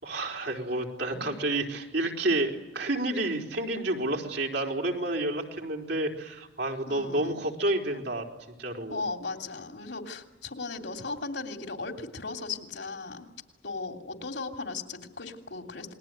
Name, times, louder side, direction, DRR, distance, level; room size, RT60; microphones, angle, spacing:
voice 1, 0.0-8.3 8.6-9.0, right 2 dB, 80° right, 1 dB, 4.4 m, -30 dB
voice 2, 6.9-7.4 8.9-13.3 13.6-15.9, left 3 dB, 90° left, 4 dB, 3.1 m, -37 dB
28.0 x 21.0 x 9.4 m, 1.1 s
head